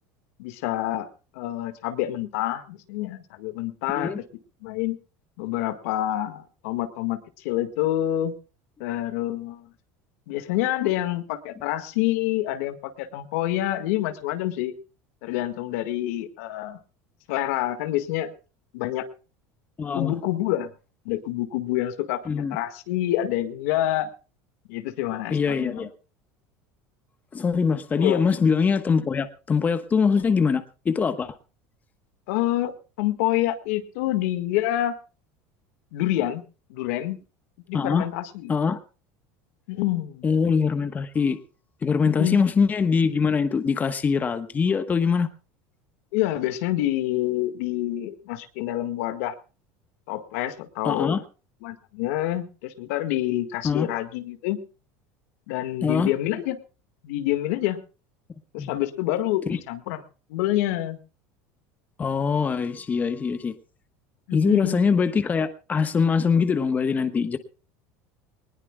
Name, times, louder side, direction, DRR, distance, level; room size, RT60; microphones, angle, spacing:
voice 1, 0.4-1.1 1.3-4.1 4.6-5.0 5.4-8.3 8.8-9.7 10.3-14.7 15.2-16.8 17.3-18.3 18.7-19.1 19.9-20.7 21.1-24.1 24.7-25.9 28.0-28.3 32.3-35.0 35.9-36.4 36.7-37.2 37.7-38.5 39.7-40.2 42.0-42.5 46.1-49.3 50.1-51.2 51.6-54.6 55.5-56.6 57.0-57.8 58.5-60.0 60.3-61.0 64.3-64.9, left 14 dB, 80° left, 9 dB, 1.8 m, -27 dB
voice 2, 19.8-20.1 22.3-22.6 25.3-25.9 27.3-31.3 37.7-38.0 38.5-38.8 40.2-41.4 41.8-45.3 50.8-51.2 53.6-53.9 55.8-56.1 58.6-58.8 59.5-59.6 62.0-63.5 64.3-67.4, left 5 dB, 20° left, 9 dB, 1.2 m, -23 dB
21.5 x 20.0 x 2.3 m, 0.33 s
supercardioid pair, 135°, 7 cm